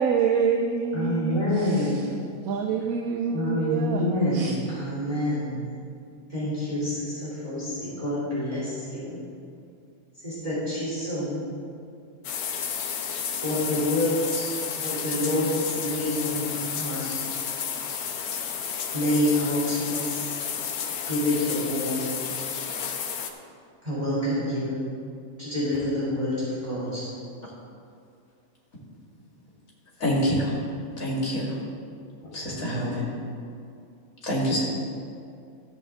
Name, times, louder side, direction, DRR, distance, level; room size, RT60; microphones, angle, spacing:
voice 1, 0.0-1.4 2.5-4.0 4.3-4.5, right 6 dB, 75° right, 3 dB, 1.1 m, -26 dB
voice 2, 0.9-2.1 3.3-5.6 6.3-9.2 10.2-11.4 13.4-17.2 18.9-20.4 21.1-22.1 23.8-24.8 25.4-27.0 32.2-32.3, left 1 dB, 25° right, -10 dB, 3.1 m, -27 dB
sound 1, 12.2-23.3, left 7 dB, 90° left, 1.3 m, -31 dB
voice 3, 30.0-30.5 31.0-31.5 32.3-33.1 34.3-34.7, equal, 65° left, -4 dB, 2.6 m, -26 dB
14.0 x 7.9 x 3.6 m, 2.4 s
omnidirectional pair, 1.6 m